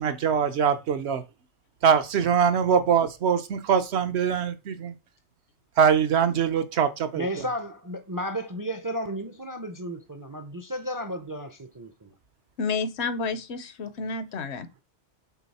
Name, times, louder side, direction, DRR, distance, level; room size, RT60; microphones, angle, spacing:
voice 1, 0.0-1.2 1.8-4.9 5.8-7.2, right 7 dB, 70° right, 1.0 m, -23 dB
voice 2, 7.1-12.1, equal, 30° right, 0.4 m, -33 dB
voice 3, 12.6-14.7, left 4 dB, 70° left, 1.0 m, -30 dB
6.2 x 3.9 x 4.1 m
omnidirectional pair, 1.2 m